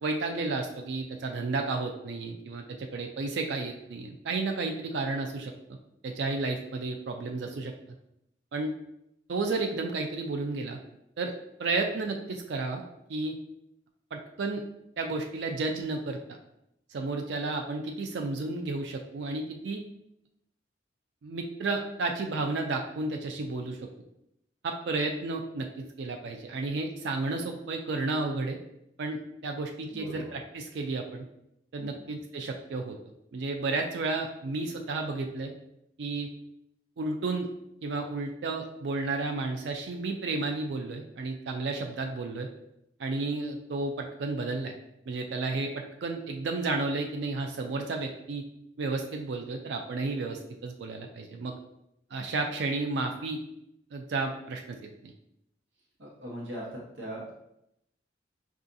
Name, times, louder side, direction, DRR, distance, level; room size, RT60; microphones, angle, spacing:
voice 1, 0.0-5.5 6.0-7.7 8.5-8.7 9.3-10.8 11.2-11.3 11.6-12.8 13.1-13.3 14.1-14.6 15.0-16.4 16.9-19.8 21.2-23.9 24.6-28.6 29.0-31.3 31.7-33.0 33.3-35.5 36.0-36.3 37.0-37.5 37.8-42.5 43.0-44.8 45.1-48.4 48.8-51.6 52.1-53.4 53.9-54.8 55.0-55.1, right 3 dB, 70° right, 3 dB, 0.4 m, -32 dB
voice 2, 29.9-30.3 31.8-32.1 56.0-57.3, right 1 dB, 85° right, -4 dB, 1.0 m, -40 dB
5.5 x 2.4 x 2.6 m, 0.81 s
head